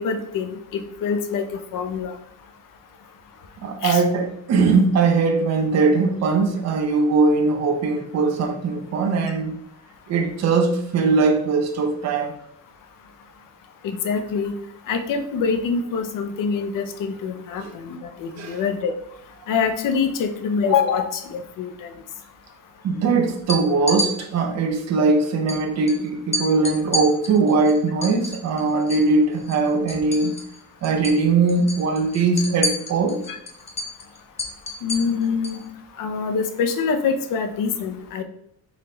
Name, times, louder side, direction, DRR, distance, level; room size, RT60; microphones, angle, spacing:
voice 1, 0.0-2.1 3.8-4.0 13.8-14.5 14.9-18.9 19.5-21.9 33.3-33.4 34.8-35.6 36.0-38.2, left 5 dB, 65° left, 0.7 m, -25 dB
voice 2, 3.6-9.5 10.1-12.3 17.6-17.7 18.4-18.6 22.8-30.3 30.8-33.2, right 4 dB, 50° right, 0.6 m, -20 dB
sound 1, 23.4-24.1 25.5-25.6 25.9-26.0 26.3-29.1 29.4-30.6 30.8-31.2 31.5-35.6, left 1 dB, 20° left, 0.6 m, -29 dB
4.0 x 3.9 x 3.2 m
cardioid pair, 160°, 35 cm